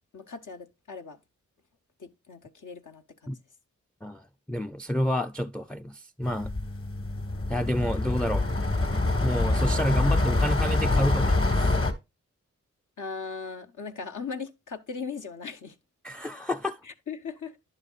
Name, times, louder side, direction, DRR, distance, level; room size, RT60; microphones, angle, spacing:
voice 1, 0.1-1.2 2.0-3.3 13.0-15.7 16.8-17.6, left 5 dB, 75° left, 1.0 m, -38 dB
voice 2, 4.0-6.5 7.5-8.5 9.2-11.7 16.0-16.8, equal, 5° left, 0.3 m, -29 dB
sound 1, 6.2-11.9, left 2 dB, 45° left, 1.6 m, -25 dB
10.5 x 6.7 x 2.4 m
cardioid pair, 50°, 31 cm